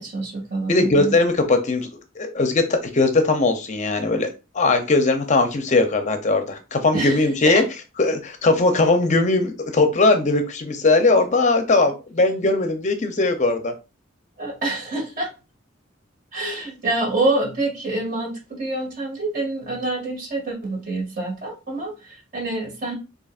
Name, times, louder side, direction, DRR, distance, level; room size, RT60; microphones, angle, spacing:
voice 1, 0.0-1.1 6.9-7.6 14.4-15.3 16.3-22.9, right 2 dB, 45° right, -1 dB, 2.0 m, -26 dB
voice 2, 0.7-1.9 2.2-4.3 4.5-7.6 8.0-13.7, left 3 dB, 40° left, 7 dB, 0.6 m, -19 dB
6.8 x 2.8 x 2.4 m, 0.30 s
head